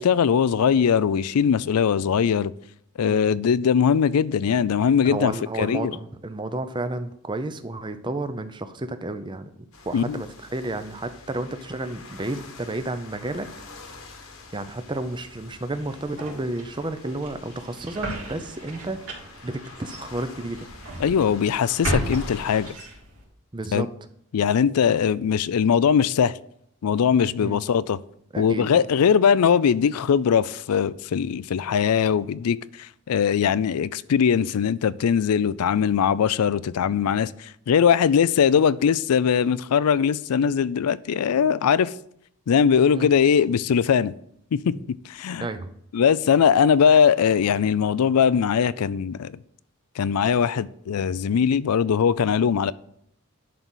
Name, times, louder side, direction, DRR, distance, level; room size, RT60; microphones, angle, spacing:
voice 1, 0.0-2.5 3.0-5.3 5.6-5.9 9.9-10.2 21.0-22.7 23.7-23.9 24.3-26.3 26.8-28.0 28.4-32.6 33.1-41.9 42.5-44.1 44.5-44.7 45.2-45.5 45.9-49.3 50.0-52.7, left 7 dB, 85° left, 0.4 m, -20 dB
voice 2, 5.0-9.5 9.9-13.5 14.5-19.0 19.4-20.7 23.5-23.9 27.4-27.6 28.3-28.9 42.9-43.1 45.4-45.7, right 2 dB, 20° right, 0.6 m, -31 dB
sound 1, 9.7-22.7, left 3 dB, 65° left, 1.2 m, -46 dB
sound 2, 15.7-23.2, equal, 85° right, 3.2 m, -35 dB
11.0 x 4.0 x 6.2 m
head